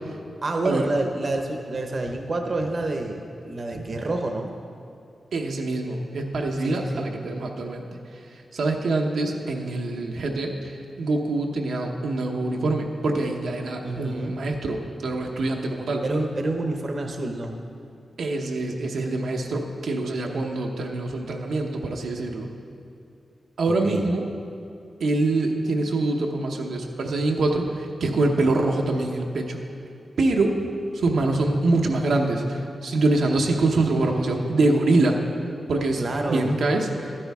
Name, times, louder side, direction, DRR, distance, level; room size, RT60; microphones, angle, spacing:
voice 1, 0.4-4.5 6.6-7.0 13.8-14.4 16.0-17.6 23.7-24.1 36.0-36.5, right 2 dB, 45° right, 3 dB, 0.7 m, -28 dB
voice 2, 5.3-7.8 8.5-16.0 18.2-22.5 23.6-24.2 25.0-29.6 30.2-30.6 30.9-35.2 35.7-36.0 36.3-37.2, right 2 dB, 90° right, 1 dB, 0.9 m, -24 dB
12.0 x 9.9 x 3.5 m, 2.6 s
wide cardioid pair, 120°, 0 cm